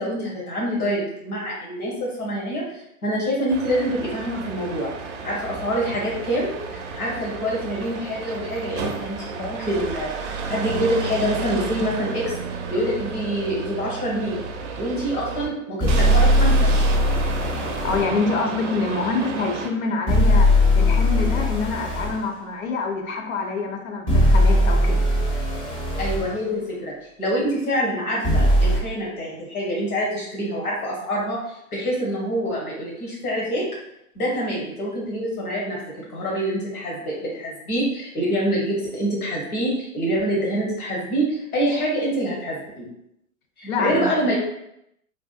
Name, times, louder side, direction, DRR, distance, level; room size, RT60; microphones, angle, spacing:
voice 1, 0.0-4.9 5.2-12.3 12.7-14.4 14.8-16.7 26.0-33.7 34.1-35.8 36.1-42.8 43.6-44.4, equal, 85° left, -4 dB, 1.0 m, -26 dB
sound 1, 3.5-15.5 15.9-19.7, right 4 dB, 55° right, 0.5 m, -32 dB
sound 2, 15.8-18.1 20.1-22.2 24.1-26.3 28.2-28.8, left 1 dB, 10° left, 0.4 m, -19 dB
voice 2, 17.8-25.0 43.7-44.3, left 3 dB, 70° left, 3 dB, 0.6 m, -26 dB
2.5 x 2.2 x 2.4 m, 0.80 s
hypercardioid pair, 105°, 43 cm